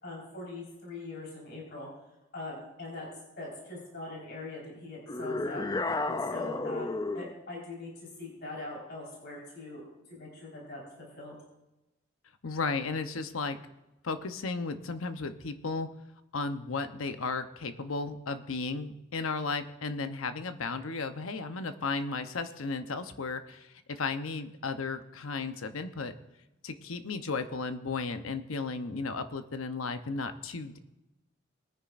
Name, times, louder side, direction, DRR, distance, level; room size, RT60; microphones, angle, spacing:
voice 1, 0.0-1.9 2.3-3.1 3.4-5.6 6.1-10.8 11.2-11.3, left 2 dB, 55° left, -3 dB, 4.3 m, -42 dB
sound 1, 5.1-7.4, left 2 dB, 20° left, 0.3 m, -32 dB
voice 2, 12.4-13.6 14.0-15.9 16.3-26.1 26.6-30.8, left 4 dB, 90° left, 9 dB, 0.8 m, -34 dB
20.5 x 10.0 x 2.5 m, 0.99 s
head